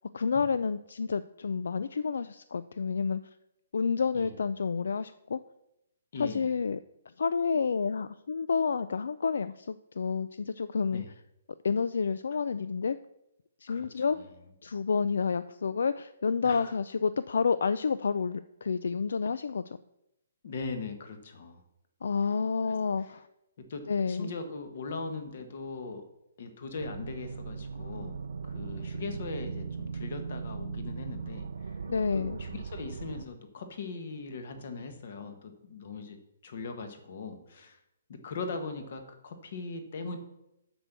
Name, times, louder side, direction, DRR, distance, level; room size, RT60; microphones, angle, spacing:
voice 1, 0.1-3.2 3.7-5.4 6.2-6.8 7.2-11.0 11.6-13.0 13.6-14.2 14.6-19.7 22.0-23.3 23.9-24.3 31.9-32.4, left 5 dB, 75° left, 14 dB, 0.4 m, -29 dB
voice 2, 6.1-6.5 10.9-11.1 13.7-14.3 16.4-16.7 20.4-21.6 22.7-22.8 23.0-23.1 23.7-26.0 26.4-31.8 32.1-36.2 36.4-37.8 38.1-40.2, left 4 dB, 45° left, 7 dB, 1.4 m, -40 dB
sound 1, 26.8-33.2, right 5 dB, 65° right, 0.5 m, -38 dB
7.7 x 6.1 x 6.8 m, 0.86 s
hypercardioid pair, 175°, 0 cm